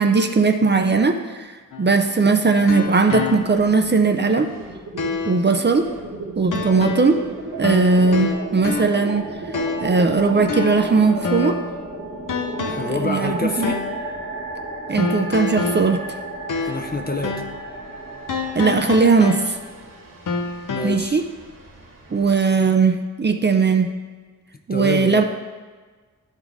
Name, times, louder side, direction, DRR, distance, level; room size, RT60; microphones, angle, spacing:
voice 1, 0.0-1.5 1.8-4.5 5.3-5.9 6.4-7.2 7.6-9.3 9.8-11.6 12.6-13.7 14.9-16.0 18.5-19.6 20.8-21.2 22.1-23.9 24.7-25.2, right 4 dB, 35° right, 5 dB, 0.4 m, -18 dB
sound 1, 1.7-3.8 4.2-4.3 5.0-5.5 6.5-7.3 7.6-9.1 9.5-10.0 10.5-11.8 12.3-13.0 13.6-14.0 15.0-17.0 17.2-17.6 18.3-19.8 20.3-20.9, left 4 dB, 75° left, 0.7 m, -28 dB
sound 2, 3.3-4.1 4.4-22.4, right 2 dB, 85° right, 1.5 m, -33 dB
voice 2, 12.8-13.8 16.7-17.4 20.7-21.2 24.7-25.2, left 3 dB, 30° left, 5 dB, 0.5 m, -27 dB
12.0 x 4.1 x 3.5 m, 1.4 s
wide cardioid pair, 110°, 32 cm